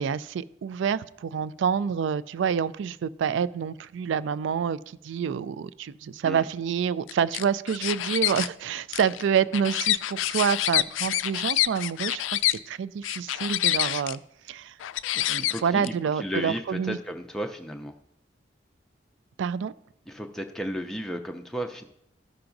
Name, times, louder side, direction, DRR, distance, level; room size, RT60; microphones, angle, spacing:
voice 1, 0.0-14.2 14.5-14.8 15.1-17.0 19.4-19.7, right 7 dB, 80° right, 17 dB, 0.3 m, -28 dB
sound 1, 7.1-8.5 8.9-12.6 13.0-14.2 14.8-15.9, left 14 dB, 90° left, 0.3 m, -27 dB
voice 2, 15.4-17.9 20.1-21.8, equal, 5° left, 3 dB, 0.4 m, -34 dB
13.5 x 5.8 x 2.6 m, 0.76 s
head